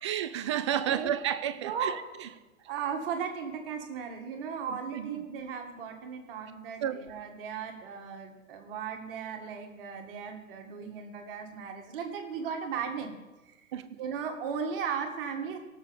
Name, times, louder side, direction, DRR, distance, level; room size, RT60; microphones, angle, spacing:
voice 1, 0.0-2.3 4.7-5.2 6.8-7.0 13.7-14.0, right 10 dB, 25° right, 0.4 m, -32 dB
voice 2, 1.6-2.0 2.7-13.1 13.5-13.6 14.0-15.6, right 6 dB, 40° right, 2.0 m, -36 dB
18.0 x 6.7 x 4.1 m
figure-of-eight pair, 115°, 41 cm